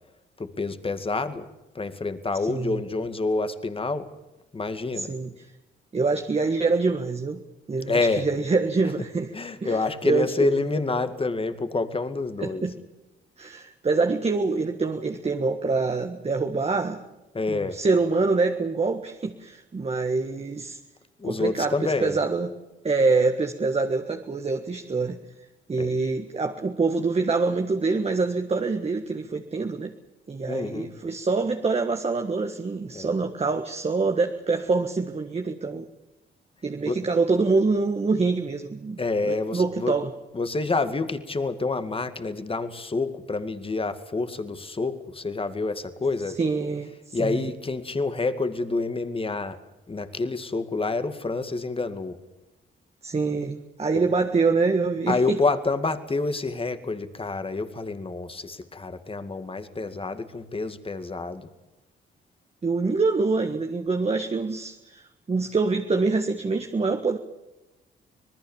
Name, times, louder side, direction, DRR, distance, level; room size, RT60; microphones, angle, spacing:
voice 1, 0.4-1.5 1.7-4.1 4.5-5.1 7.9-8.3 9.3-12.7 17.3-17.8 21.2-22.2 25.8-26.0 30.5-30.9 32.9-33.1 36.9-37.0 39.0-40.0 40.3-46.4 47.1-49.6 49.9-52.1 55.1-61.5, left 3 dB, 25° left, 10 dB, 2.1 m, -28 dB
voice 2, 2.5-2.8 5.0-5.3 5.9-7.4 7.7-9.3 9.6-10.6 12.4-12.8 13.4-17.0 17.5-20.8 21.2-22.5 22.8-25.2 25.7-29.9 30.3-35.9 36.6-39.0 39.3-40.1 46.4-47.5 53.0-55.4 62.6-67.2, right 4 dB, 30° right, 4 dB, 1.7 m, -25 dB
26.0 x 19.5 x 7.3 m, 1.0 s
cardioid pair, 85°, 20 cm